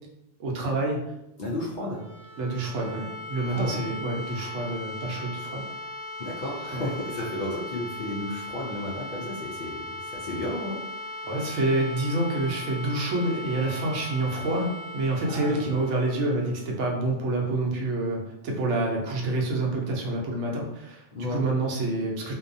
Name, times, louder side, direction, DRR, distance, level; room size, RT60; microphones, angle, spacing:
voice 1, 0.4-1.0 2.3-5.7 6.7-6.8 11.2-22.3, right 2 dB, 70° right, -1 dB, 0.9 m, -27 dB
voice 2, 1.4-2.0 3.5-3.8 6.2-10.8 15.3-15.6 21.1-21.4, left 1 dB, 60° left, -4 dB, 0.5 m, -33 dB
sound 1, 1.8-17.6, left 1 dB, 40° left, 1.1 m, -38 dB
2.6 x 2.2 x 2.5 m, 0.87 s
omnidirectional pair, 1.3 m